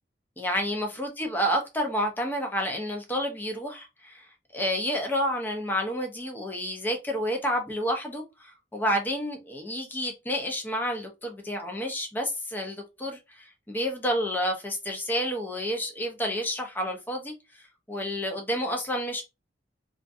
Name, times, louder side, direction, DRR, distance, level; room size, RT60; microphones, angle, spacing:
voice 1, 0.4-17.3 17.9-19.2, equal, 10° left, 0.5 m, -30 dB
2.5 x 2.4 x 2.5 m
head